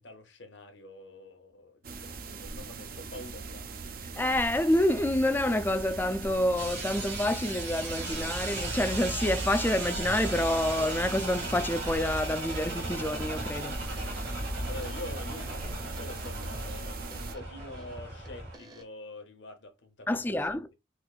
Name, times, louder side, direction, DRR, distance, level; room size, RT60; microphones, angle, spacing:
voice 1, 0.0-3.7 14.7-20.5, left 2 dB, 80° left, 0.8 m, -46 dB
sound 1, 1.8-17.4, right 3 dB, 55° right, 0.5 m, -39 dB
voice 2, 4.1-14.2 20.1-20.7, left 1 dB, 10° left, 0.3 m, -28 dB
sound 2, 6.6-18.6, right 2 dB, 75° right, 1.7 m, -37 dB
sound 3, 12.5-18.8, right 1 dB, 20° right, 0.7 m, -46 dB
4.3 x 2.5 x 2.3 m
head